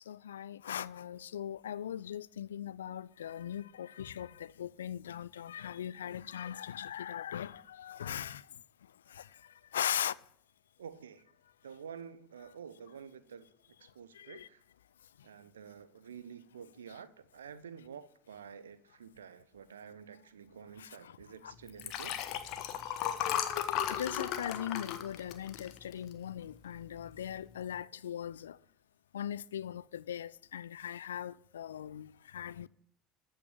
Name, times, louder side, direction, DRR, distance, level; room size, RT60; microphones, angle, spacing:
voice 1, 0.1-8.4 9.1-9.2 9.7-10.1 14.2-14.5 20.8-20.9 21.4-21.5 23.9-28.6 29.1-32.7, left 10 dB, 70° left, 0.4 m, -39 dB
voice 2, 10.8-11.3 11.6-13.5 13.8-14.6 15.2-22.1 23.6-23.9, right 7 dB, 75° right, 0.8 m, -49 dB
Liquid, 21.7-26.3 26.8-27.1 27.3-27.4, left 10 dB, 50° left, 1.2 m, -35 dB
14.0 x 5.6 x 8.7 m
figure-of-eight pair, 70°, 0 cm